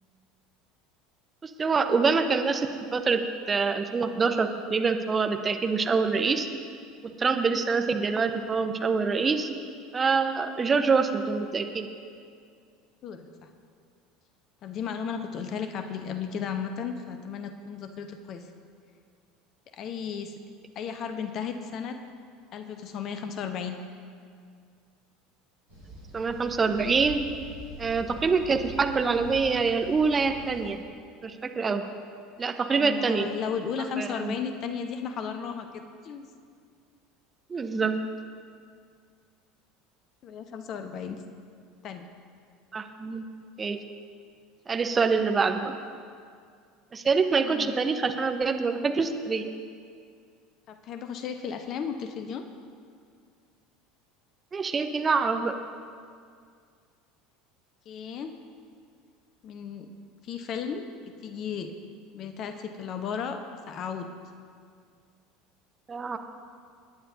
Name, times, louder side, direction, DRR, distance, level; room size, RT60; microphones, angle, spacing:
voice 1, 1.4-3.2 3.5-6.5 7.2-9.5 9.9-11.9 26.1-27.2 27.8-30.8 31.2-31.8 32.4-33.3 33.9-34.3 37.5-37.9 42.7-43.2 43.6-43.8 44.7-45.7 46.9-49.4 54.5-55.5 65.9-66.2, right 4 dB, 25° right, 6 dB, 0.9 m, -25 dB
voice 2, 14.6-18.4 19.7-20.3 20.7-22.0 22.5-23.8 28.0-28.3 32.7-36.3 40.2-41.2 41.8-42.1 47.4-47.7 50.7-52.5 57.9-58.3 59.4-59.9 60.2-60.8 61.2-61.7 62.1-63.4 63.7-64.1, left 7 dB, 40° left, 8 dB, 0.9 m, -34 dB
sound 1, 25.7-30.7, equal, 90° right, 3.9 m, -44 dB
26.5 x 9.9 x 2.7 m, 2.2 s
figure-of-eight pair, 70°, 0 cm